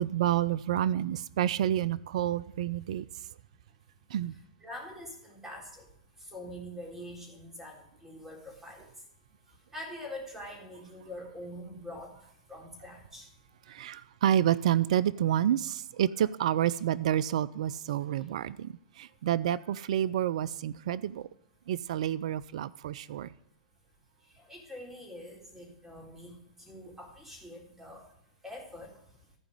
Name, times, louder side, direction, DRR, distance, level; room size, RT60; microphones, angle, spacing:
voice 1, 0.0-3.1 4.1-4.3 13.7-21.3 21.7-23.3, right 11 dB, 65° right, 0.4 m, -29 dB
voice 2, 4.6-5.9 6.2-8.9 9.7-12.1 12.5-13.3 13.7-13.8 24.4-28.0 28.4-28.9, left 1 dB, 10° right, 3.7 m, -44 dB
14.5 x 4.9 x 5.2 m
hypercardioid pair, 110°, 4 cm